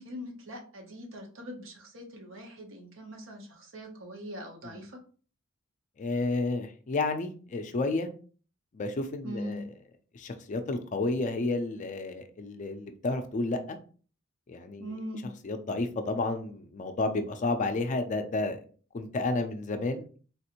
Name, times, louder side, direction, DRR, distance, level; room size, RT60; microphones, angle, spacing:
voice 1, 0.0-5.0 9.2-9.6 14.8-15.3, equal, 70° right, 3 dB, 0.8 m, -41 dB
voice 2, 6.0-8.1 8.7-9.6 10.1-13.8 14.5-14.9 15.4-18.6 18.9-20.2, left 2 dB, 40° left, 7 dB, 0.4 m, -31 dB
3.5 x 2.5 x 2.9 m, 0.40 s
head